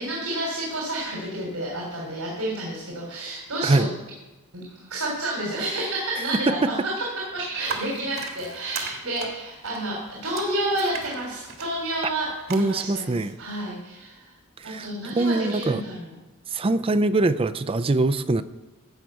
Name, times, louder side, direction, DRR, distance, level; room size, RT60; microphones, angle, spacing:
voice 1, 0.0-3.9 4.5-6.9 7.3-14.3 14.6-16.1, right 1 dB, 85° right, -3 dB, 3.4 m, -30 dB
sound 1, 7.6-12.6, right 5 dB, 65° right, 1.8 m, -38 dB
voice 2, 12.5-13.4 14.6-14.9 15.2-15.8 16.5-18.4, right 2 dB, 25° right, 11 dB, 0.4 m, -22 dB
13.5 x 5.8 x 8.1 m, 1.1 s
head